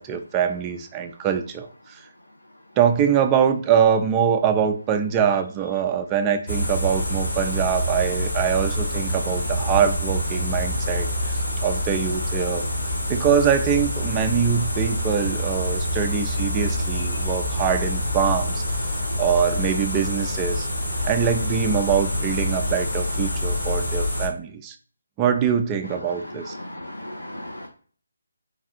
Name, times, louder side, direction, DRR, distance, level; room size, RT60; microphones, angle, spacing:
voice 1, 0.0-2.0 2.8-12.7 13.1-18.6 19.2-20.7 21.0-24.8 25.2-26.5, right 8 dB, 20° right, 7 dB, 0.3 m, -23 dB
sound 1, 6.5-24.3, left 1 dB, 65° left, 1.3 m, -26 dB
voice 2, 25.9-27.7, left 1 dB, 90° left, 2 dB, 0.6 m, -37 dB
3.3 x 2.4 x 2.5 m, 0.43 s
figure-of-eight pair, 150°, 0 cm